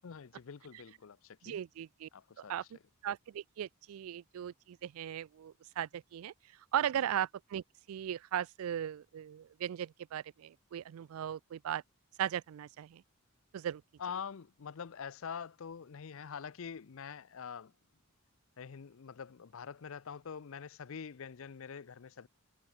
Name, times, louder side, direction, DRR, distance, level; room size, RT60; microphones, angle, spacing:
voice 1, 0.0-1.6 2.1-2.7 6.9-7.1 14.0-17.7 18.6-22.3, left 6 dB, 65° left, 0.5 m, -45 dB
voice 2, 1.4-2.1 2.5-2.6 3.0-6.3 6.7-11.8 12.2-13.0 13.5-13.8, right 10 dB, 70° right, 0.3 m, -37 dB
head